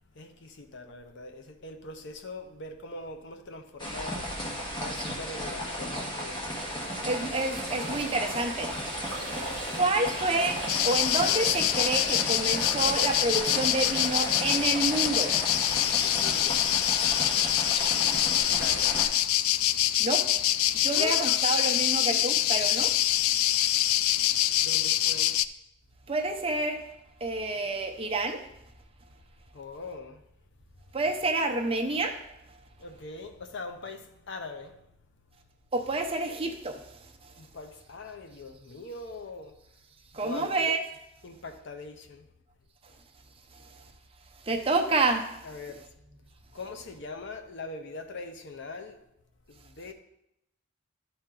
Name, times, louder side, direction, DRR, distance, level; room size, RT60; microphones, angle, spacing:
voice 1, 0.1-4.4 4.8-6.5 9.2-9.6 15.9-16.6 18.6-18.9 20.9-21.5 24.6-25.3 29.5-30.2 32.8-34.8 37.4-39.6 40.2-40.6 41.2-42.3 45.4-45.8 46.5-49.0 49.5-49.9, left 3 dB, 60° left, 0.7 m, -42 dB
sound 1, 3.8-19.0, equal, 20° left, 1.2 m, -34 dB
sound 2, 6.4-15.5, right 4 dB, 55° right, 0.9 m, -44 dB
voice 2, 7.0-8.7 9.7-16.1 17.4-17.5 18.3-18.9 20.0-20.2 20.7-22.9 26.1-26.8 27.2-28.4 30.9-32.2 35.7-36.8 40.1-40.8 44.4-45.3, right 2 dB, 25° right, 0.7 m, -29 dB
sound 3, 10.7-25.4, left 13 dB, 85° left, 0.3 m, -25 dB
11.5 x 4.3 x 3.8 m
head